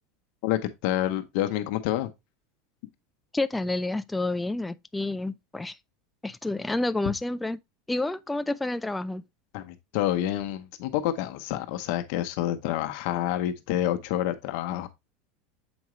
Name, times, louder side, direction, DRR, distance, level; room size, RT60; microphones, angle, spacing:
voice 1, 0.4-2.1 9.5-14.9, left 12 dB, 65° left, 0.8 m, -28 dB
voice 2, 3.3-5.8 6.2-7.6 7.9-9.2, left 2 dB, 10° left, 0.3 m, -29 dB
7.1 x 4.9 x 3.1 m
supercardioid pair, 125°, 0 cm